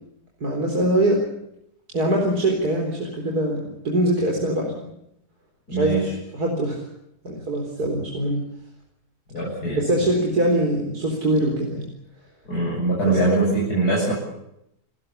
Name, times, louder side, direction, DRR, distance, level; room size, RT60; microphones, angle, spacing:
voice 1, 0.4-1.2 1.9-4.9 5.7-6.0 6.3-6.8 7.2-8.4 9.8-11.9 13.0-13.2, right 1 dB, 75° right, 0 dB, 4.7 m, -23 dB
voice 2, 5.7-6.1 9.3-10.1 12.5-14.1, right 2 dB, 80° left, -4 dB, 8.1 m, -22 dB
29.5 x 15.5 x 8.4 m, 0.80 s
omnidirectional pair, 1.7 m